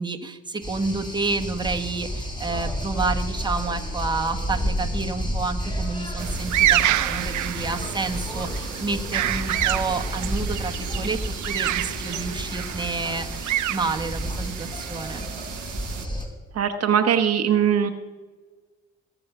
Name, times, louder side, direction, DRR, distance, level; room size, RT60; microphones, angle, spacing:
voice 1, 0.0-15.3, right 3 dB, 15° right, 4 dB, 1.3 m, -29 dB
sound 1, 0.6-16.2, equal, 15° left, 3.7 m, -31 dB
sound 2, 6.2-16.0, right 13 dB, 75° right, 0.7 m, -28 dB
voice 2, 16.6-17.9, right 8 dB, 55° right, 7 dB, 1.0 m, -20 dB
19.5 x 7.1 x 6.0 m, 1.4 s
cardioid pair, 90°, 30 cm